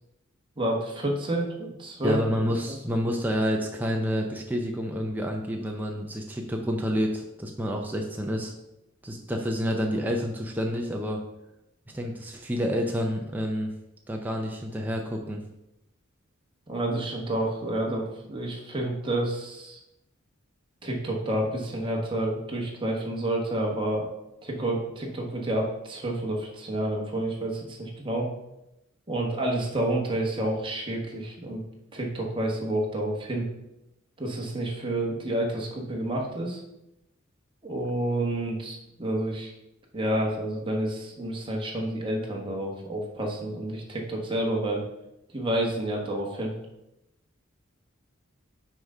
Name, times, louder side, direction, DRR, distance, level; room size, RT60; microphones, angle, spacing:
voice 1, 0.6-2.2 16.7-19.8 20.8-24.0 24.4-28.3 29.1-31.6 31.9-33.5 34.2-36.6 37.6-39.5 39.9-44.8 45.3-46.5, right 1 dB, 25° right, -1 dB, 1.2 m, -29 dB
voice 2, 2.0-8.5 9.0-11.2 11.9-13.7 14.1-15.4, equal, 10° right, 1 dB, 0.5 m, -29 dB
6.2 x 3.7 x 5.3 m, 0.89 s
head